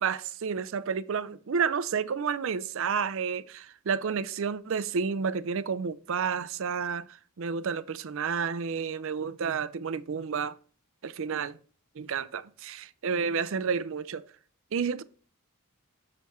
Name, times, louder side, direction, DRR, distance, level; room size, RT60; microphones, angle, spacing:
voice 1, 0.0-7.1 7.4-10.6 11.0-11.6 12.0-14.2 14.7-15.0, right 6 dB, 60° right, 0.5 m, -30 dB
6.7 x 6.4 x 3.0 m
head